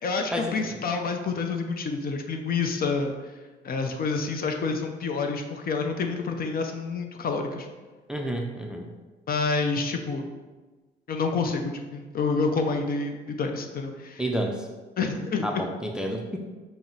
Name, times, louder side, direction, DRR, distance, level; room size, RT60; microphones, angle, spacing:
voice 1, 0.0-3.1 3.6-7.7 9.3-10.2 11.1-14.2 15.0-15.7, left 4 dB, 50° left, 4 dB, 0.5 m, -28 dB
voice 2, 8.1-8.9 14.2-14.6 15.4-16.4, equal, 5° right, 2 dB, 0.4 m, -29 dB
5.6 x 2.0 x 3.8 m, 1.3 s
cardioid pair, 90°, 20 cm